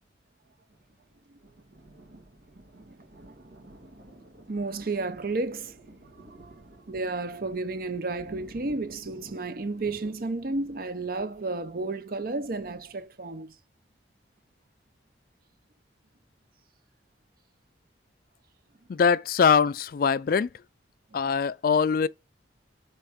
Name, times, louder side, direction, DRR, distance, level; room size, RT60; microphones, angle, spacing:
Thunder, 0.7-13.0, right 1 dB, 75° right, 2.2 m, -52 dB
voice 1, 4.5-5.8 6.4-6.5 6.9-13.5, right 3 dB, 50° right, 0.6 m, -32 dB
voice 2, 18.9-20.5 21.1-22.1, left 6 dB, 50° left, 0.3 m, -22 dB
5.7 x 4.3 x 5.0 m
head